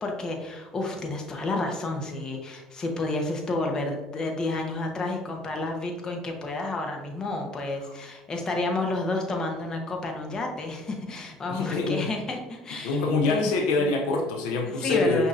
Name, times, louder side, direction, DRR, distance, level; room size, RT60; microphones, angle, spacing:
voice 1, 0.0-13.5 14.6-15.3, left 2 dB, 30° left, 2 dB, 0.8 m, -30 dB
voice 2, 11.5-12.1 12.8-15.3, left 3 dB, 75° left, 2 dB, 0.5 m, -25 dB
5.8 x 2.7 x 2.5 m, 1.0 s
supercardioid pair, 100°, 2 cm